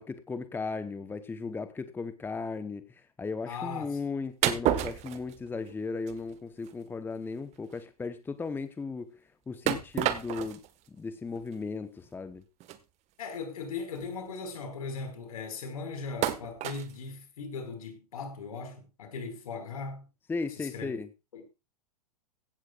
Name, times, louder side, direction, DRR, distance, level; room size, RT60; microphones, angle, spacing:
voice 1, 0.0-9.1 9.5-10.6 10.9-12.4 20.3-21.1, left 4 dB, 10° left, 0.9 m, -36 dB
voice 2, 3.5-3.9 13.2-20.1 20.6-20.9 21.3-21.4, left 4 dB, 70° left, 5.1 m, -38 dB
sound 1, 4.4-5.7 6.1-6.3 6.7-6.8 7.2-7.3 7.5-7.7 9.7-10.7 11.4-11.5 12.6-12.8 13.6-13.7 14.0-14.2 16.2-16.9, right 12 dB, 35° right, 1.5 m, -30 dB
16.5 x 14.0 x 2.4 m
hypercardioid pair, 100°, 20 cm